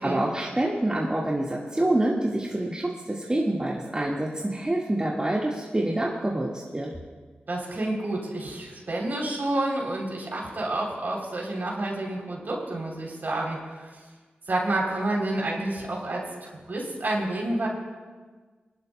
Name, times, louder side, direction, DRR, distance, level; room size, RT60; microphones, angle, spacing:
voice 1, 0.0-6.9, right 1 dB, 25° right, -4 dB, 1.6 m, -26 dB
voice 2, 7.5-13.9 14.5-17.7, right 2 dB, 60° right, -2 dB, 3.3 m, -29 dB
23.0 x 11.5 x 2.2 m, 1.4 s
cardioid pair, 50°, 4 cm